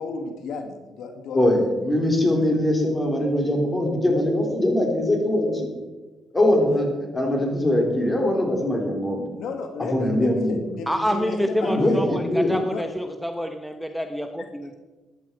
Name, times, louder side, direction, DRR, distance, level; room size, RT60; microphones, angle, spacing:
voice 1, 0.0-1.5 2.2-2.4 9.3-12.2 12.7-12.9, left 3 dB, 80° left, 5 dB, 1.8 m, -33 dB
voice 2, 1.3-5.7 6.3-9.2 9.8-10.6 11.6-12.5, left 1 dB, 20° left, 1 dB, 4.0 m, -22 dB
voice 3, 10.9-14.8, equal, ahead, 6 dB, 1.0 m, -27 dB
15.5 x 11.0 x 4.7 m, 1.2 s
cardioid pair, 90°, 0 cm